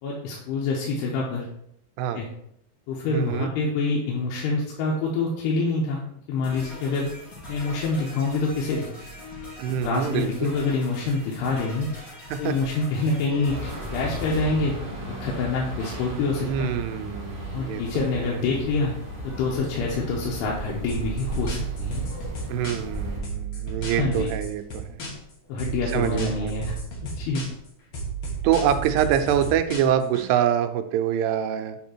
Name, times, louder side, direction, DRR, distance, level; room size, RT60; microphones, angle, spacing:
voice 1, 0.0-1.5 2.1-2.3 2.9-6.0 6.3-7.1 7.5-8.9 9.8-11.9 12.4-14.8 15.1-16.7 17.5-18.9 19.2-22.1 23.9-24.3 25.5-26.8 27.2-27.4, left 3 dB, 90° left, -3 dB, 2.9 m, -26 dB
voice 2, 3.1-3.5 9.6-10.5 12.3-12.5 16.4-18.4 22.5-25.0 25.9-26.5 28.4-31.8, right 9 dB, 85° right, 8 dB, 2.6 m, -25 dB
sound 1, 6.4-14.4, left 1 dB, 40° left, 1.2 m, -42 dB
sound 2, 13.5-23.2, right 1 dB, 30° right, 0.9 m, -35 dB
sound 3, 20.9-23.0 23.2-25.3 25.6-27.7 27.9-30.2, right 4 dB, 65° left, 1.3 m, -32 dB
7.7 x 3.3 x 4.4 m, 0.75 s
omnidirectional pair, 4.7 m